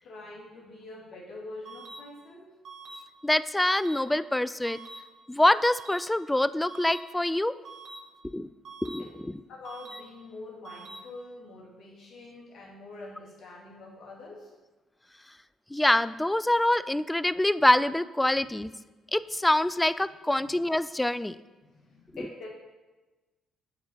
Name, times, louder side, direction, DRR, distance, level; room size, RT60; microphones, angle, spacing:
voice 1, 0.0-2.5 9.0-9.1 9.5-14.5 20.4-20.5 21.6-22.5, left 2 dB, 55° left, -3 dB, 2.3 m, -45 dB
sound 1, 1.7-2.0 2.7-3.0 3.7-4.0 4.7-5.0 5.7-6.0 6.7-7.0 7.7-8.0 8.7-9.0 9.7-10.0 10.7-11.0, right 3 dB, 55° right, 1.7 m, -44 dB
voice 2, 3.2-4.8 5.3-7.5 8.3-8.5 8.8-9.0 15.7-18.7 19.1-21.4, left 1 dB, 10° left, 16 dB, 0.3 m, -25 dB
7.4 x 4.4 x 6.4 m, 1.2 s
hypercardioid pair, 45°, 0 cm